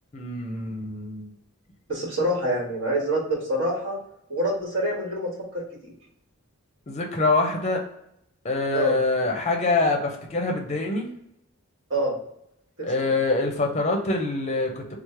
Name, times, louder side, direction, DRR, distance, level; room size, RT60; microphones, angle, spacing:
voice 1, 0.1-1.3 6.9-7.8 8.4-11.1 12.8-15.0, left 2 dB, 30° left, 2 dB, 0.6 m, -25 dB
voice 2, 1.9-4.0 4.3-5.9 8.7-8.9 11.9-12.1 12.8-12.9, right 1 dB, 60° right, -3 dB, 1.3 m, -26 dB
3.1 x 2.0 x 4.2 m, 0.77 s
head